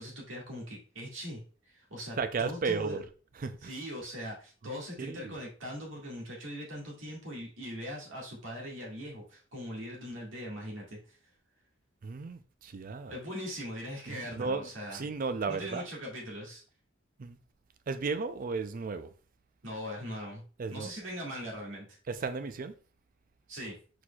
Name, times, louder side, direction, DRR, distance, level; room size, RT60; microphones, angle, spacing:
voice 1, 0.0-3.0 3.6-11.2 13.1-15.0 15.5-16.6 19.6-20.4 20.7-21.9 23.5-23.8, equal, 75° right, 1.8 m, -41 dB
voice 2, 2.2-3.0 3.3-3.8 4.6-5.4 12.0-13.1 14.1-15.9 17.2-17.4 17.9-19.1 20.6-20.9 22.1-22.7, right 4 dB, 45° right, 0.4 m, -35 dB
4.6 x 4.2 x 2.3 m
head